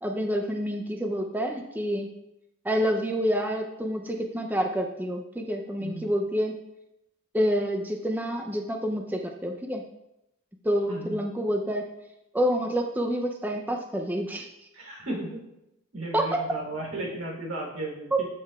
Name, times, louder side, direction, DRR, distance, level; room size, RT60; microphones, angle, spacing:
voice 1, 0.0-2.1 2.6-6.5 7.3-9.8 10.6-11.9 12.3-14.5 16.1-16.3 18.1-18.2, equal, 10° right, 2 dB, 0.5 m, -28 dB
voice 2, 10.9-11.2 14.7-15.4 15.9-18.3, right 1 dB, 80° right, -3 dB, 3.2 m, -35 dB
14.0 x 6.6 x 2.3 m, 0.89 s
head